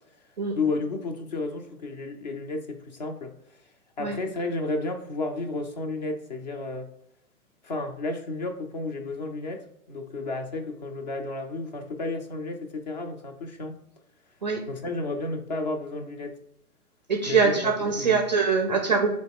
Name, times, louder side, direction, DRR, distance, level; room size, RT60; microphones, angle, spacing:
voice 1, 0.5-3.6 4.0-6.9 7.6-13.8 14.7-16.4 17.3-18.2, left 3 dB, 30° left, 5 dB, 0.4 m, -32 dB
voice 2, 17.1-19.1, right 5 dB, 30° right, 2 dB, 0.4 m, -23 dB
4.1 x 3.1 x 3.5 m, 0.78 s
hypercardioid pair, 140°, 46 cm